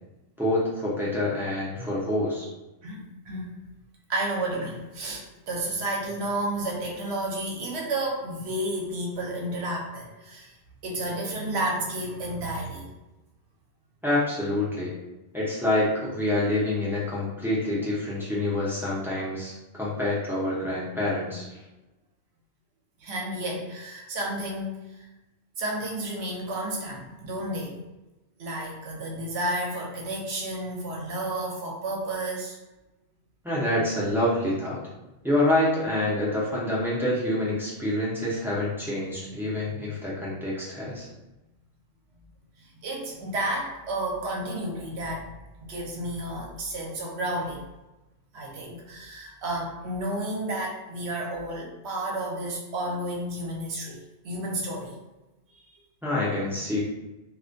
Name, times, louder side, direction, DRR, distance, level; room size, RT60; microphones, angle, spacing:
voice 1, 0.4-2.5 14.0-14.9 15.3-21.6 33.4-34.8 35.2-41.1 56.0-56.8, left 1 dB, 5° right, -7 dB, 0.3 m, -27 dB
voice 2, 2.8-3.5 4.1-10.6 10.8-12.9 23.0-25.1 25.6-27.8 28.4-32.6 42.6-45.3 45.6-47.7 48.3-55.0, right 1 dB, 70° right, -1 dB, 0.8 m, -31 dB
2.3 x 2.1 x 2.5 m, 1.0 s
omnidirectional pair, 1.2 m